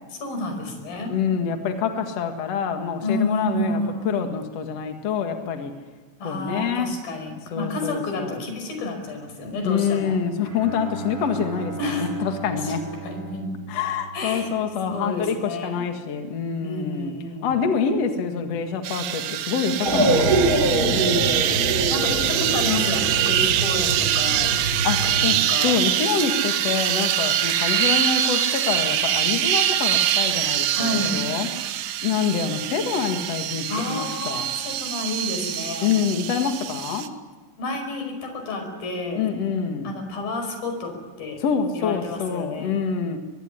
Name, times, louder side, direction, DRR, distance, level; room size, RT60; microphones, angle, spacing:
voice 1, 0.1-1.1 3.0-4.1 6.2-10.2 11.8-12.1 12.5-12.7 13.0-13.5 14.1-14.6 14.9-15.8 16.6-17.5 20.7-21.4 21.9-24.5 25.0-25.8 30.7-31.2 33.7-35.9 37.6-39.3 39.8-41.4 41.7-42.8, left 2 dB, 45° left, 5 dB, 6.5 m, -30 dB
voice 2, 1.1-3.8 4.0-5.7 6.2-6.9 7.5-8.4 9.6-12.8 13.7-17.1 17.4-20.8 24.8-31.5 32.0-34.5 35.8-37.1 39.2-39.9 41.4-43.2, left 6 dB, 75° left, 5 dB, 1.5 m, -26 dB
Bowed string instrument, 10.4-14.8, right 6 dB, 50° right, 8.4 m, -37 dB
sound 1, 18.8-37.1, right 11 dB, 80° right, 2.3 m, -24 dB
sound 2, 19.8-25.3, right 2 dB, 20° right, 4.1 m, -24 dB
23.0 x 22.5 x 9.9 m, 1.4 s
omnidirectional pair, 6.0 m